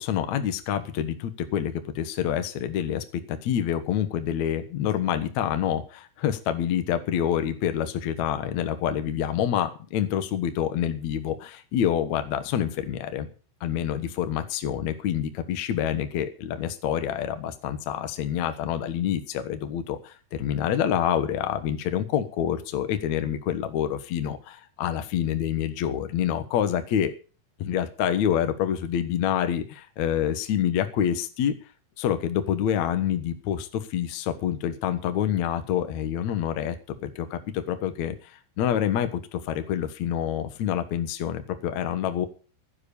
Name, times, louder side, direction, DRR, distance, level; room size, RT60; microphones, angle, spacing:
voice 1, 0.0-13.3 13.6-27.1 27.6-31.5 32.0-36.7 37.0-38.1 38.6-42.3, left 10 dB, 75° left, 9 dB, 1.7 m, -27 dB
15.0 x 7.7 x 7.0 m, 0.37 s
omnidirectional pair, 5.3 m